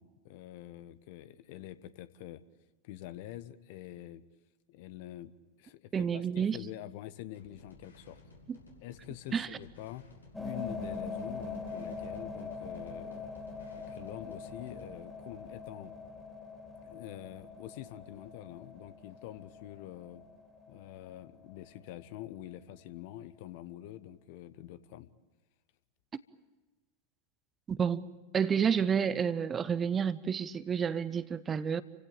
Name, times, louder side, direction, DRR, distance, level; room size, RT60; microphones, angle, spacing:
voice 1, 0.0-2.4 2.8-4.2 4.7-8.2 8.8-10.0 10.4-13.3 13.7-15.9 16.8-20.2 20.7-25.1, left 13 dB, 50° left, 1.0 m, -46 dB
voice 2, 5.9-6.6 9.3-9.5 27.7-28.0 28.3-31.8, right 7 dB, 20° right, 0.8 m, -29 dB
sound 1, 7.3-15.0, left 2 dB, 80° left, 5.4 m, -57 dB
sound 2, 10.3-22.1, left 4 dB, 5° left, 3.4 m, -43 dB
29.0 x 16.5 x 8.9 m
figure-of-eight pair, 90°, 0 cm